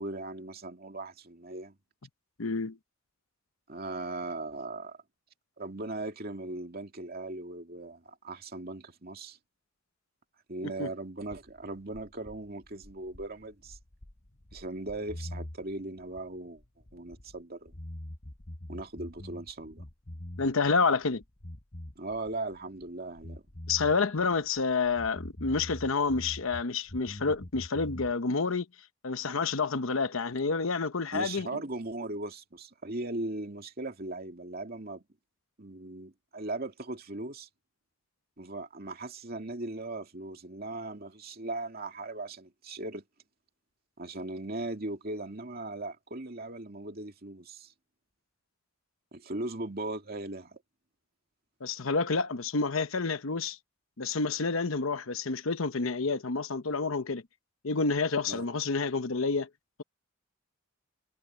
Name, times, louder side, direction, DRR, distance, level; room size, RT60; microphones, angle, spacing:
voice 1, 0.0-1.8 3.7-5.0 5.6-9.4 10.5-13.8 14.5-16.6 16.9-17.7 18.7-19.8 22.0-23.4 31.1-35.0 35.6-37.5 38.4-43.0 44.0-47.7 49.1-50.6 58.3-58.4, right 2 dB, 50° right, 2.5 m, -38 dB
voice 2, 2.4-2.8 10.6-10.9 20.4-21.2 23.7-28.7 29.0-31.5 51.6-53.6 54.0-57.2 57.6-59.5, left 4 dB, 80° left, 0.9 m, -29 dB
sound 1, 11.3-17.4 17.7-20.8 21.0-22.9 23.2-26.6 26.9-28.1, left 1 dB, 35° left, 1.0 m, -44 dB
head